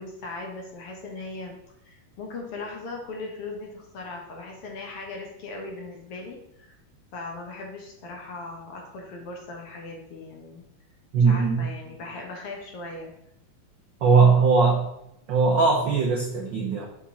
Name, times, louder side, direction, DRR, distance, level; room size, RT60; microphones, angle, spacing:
voice 1, 0.0-1.6 1.8-6.8 7.1-10.6 11.1-13.1, left 3 dB, 60° left, 0 dB, 1.7 m, -38 dB
voice 2, 11.1-11.7 14.0-14.8 15.3-16.9, right 4 dB, 90° right, -1 dB, 1.0 m, -19 dB
7.3 x 5.5 x 3.7 m, 0.81 s
omnidirectional pair, 3.4 m